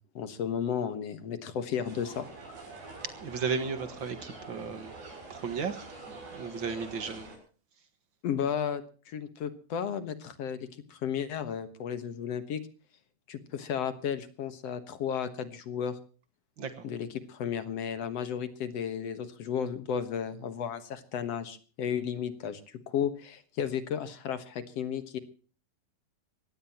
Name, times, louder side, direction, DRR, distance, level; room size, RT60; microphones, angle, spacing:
voice 1, 0.0-2.6 8.2-12.6 13.3-16.0 16.8-25.2, left 8 dB, 55° left, 12 dB, 1.9 m, -34 dB
sound 1, 1.8-7.4, right 3 dB, 85° right, 8.8 m, -46 dB
voice 2, 3.0-4.9 5.3-7.3 16.6-16.9, right 5 dB, 45° right, 11 dB, 1.6 m, -35 dB
23.5 x 18.0 x 2.9 m, 0.39 s
omnidirectional pair, 4.2 m